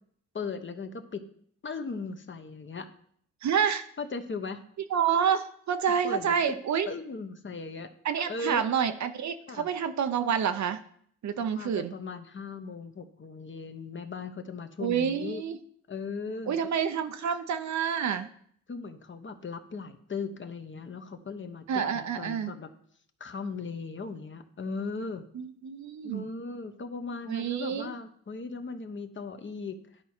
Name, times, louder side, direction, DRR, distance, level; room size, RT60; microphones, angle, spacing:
voice 1, 0.3-1.2 1.6-2.9 4.0-4.6 6.0-6.6 6.9-7.9 8.3-8.6 9.5-9.7 11.4-15.4 15.9-16.6 17.2-17.3 18.7-22.7 23.2-25.3 26.0-29.8, left 4 dB, 35° left, 7 dB, 1.0 m, -38 dB
voice 2, 3.4-3.9 4.9-6.9 8.0-10.8 11.2-11.9 14.8-15.6 16.5-18.3 21.7-22.5 25.3-26.3 27.3-27.9, right 7 dB, 55° right, 9 dB, 0.8 m, -28 dB
11.5 x 4.6 x 4.4 m, 0.62 s
supercardioid pair, 65°, 34 cm